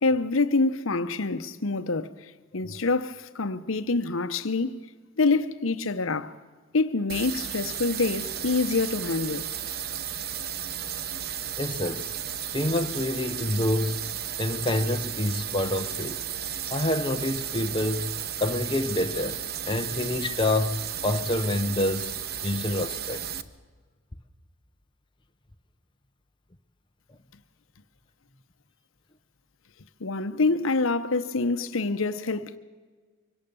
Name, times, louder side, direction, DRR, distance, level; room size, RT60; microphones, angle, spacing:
voice 1, 0.0-4.8 5.2-6.3 6.7-9.5 30.0-32.6, left 3 dB, 70° left, 0.9 m, -26 dB
sound 1, 7.1-23.4, right 9 dB, 50° right, 0.9 m, -34 dB
voice 2, 11.6-12.1 12.5-14.1 14.4-16.2 16.7-19.4 19.7-22.1 22.4-23.2 31.6-31.7, left 1 dB, 25° left, 0.9 m, -27 dB
24.0 x 18.0 x 7.0 m
head